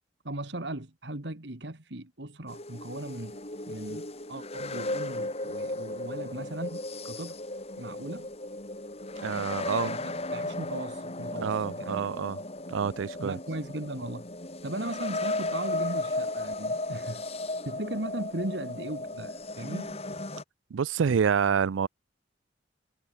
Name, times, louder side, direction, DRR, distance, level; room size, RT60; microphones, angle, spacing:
voice 1, 0.2-3.4 3.7-7.3 7.8-8.3 9.8-12.0 13.2-14.3 14.6-17.2 17.7-20.0, right 1 dB, 65° right, 2.2 m, -37 dB
sound 1, 2.5-20.4, left 2 dB, 35° left, 2.9 m, -35 dB
voice 2, 9.2-10.0 11.4-12.4 12.7-13.4 20.7-21.9, right 6 dB, 90° right, 0.4 m, -27 dB
head